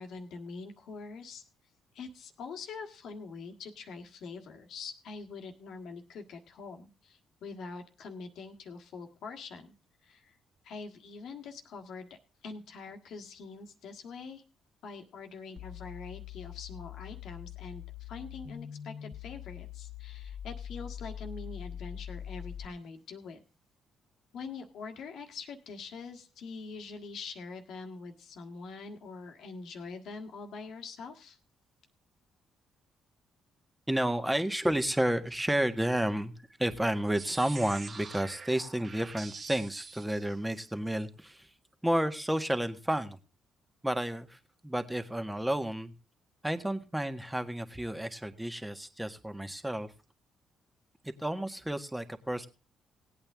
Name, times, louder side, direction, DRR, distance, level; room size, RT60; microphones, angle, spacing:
voice 1, 0.0-1.4 1.9-9.7 10.0-10.4 10.6-14.4 14.8-23.4 24.3-31.4, left 4 dB, 70° left, 4 dB, 1.6 m, -44 dB
sound 1, 15.6-22.7, left 10 dB, 45° left, 1.2 m, -43 dB
voice 2, 33.9-41.5 41.8-43.2 43.8-45.9 46.4-49.9 51.0-52.5, right 1 dB, 10° right, 8 dB, 1.6 m, -31 dB
sound 2, 37.2-40.9, right 4 dB, 40° right, 1.0 m, -45 dB
17.5 x 8.8 x 3.6 m, 0.33 s
hypercardioid pair, 50°, 0 cm